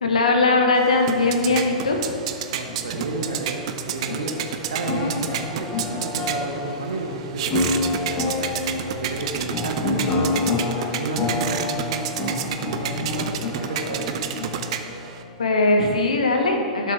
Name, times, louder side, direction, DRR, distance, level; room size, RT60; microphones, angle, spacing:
voice 1, 0.0-2.0 15.4-16.9, left 2 dB, 75° left, 3 dB, 1.1 m, -20 dB
sound 1, 0.8-15.2, right 9 dB, 55° right, 0.6 m, -31 dB
sound 2, 1.2-15.9, left 3 dB, 40° left, 1.1 m, -29 dB
voice 2, 2.5-4.4 4.7-10.4 11.0-14.2, right 3 dB, 70° right, 2 dB, 1.0 m, -32 dB
12.0 x 6.6 x 3.4 m, 2.4 s
figure-of-eight pair, 95°, 4 cm